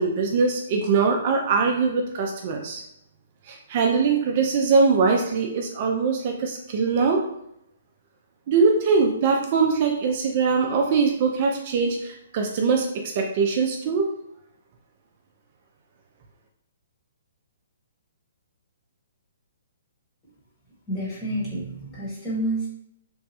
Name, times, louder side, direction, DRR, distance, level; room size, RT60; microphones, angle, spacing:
voice 1, 0.0-2.8 3.5-7.2 8.5-12.9 13.2-14.1, right 4 dB, 40° right, 2 dB, 0.4 m, -22 dB
voice 2, 20.9-22.7, right 1 dB, 20° left, -6 dB, 1.1 m, -29 dB
3.0 x 2.2 x 2.9 m, 0.76 s
hypercardioid pair, 155°, 0 cm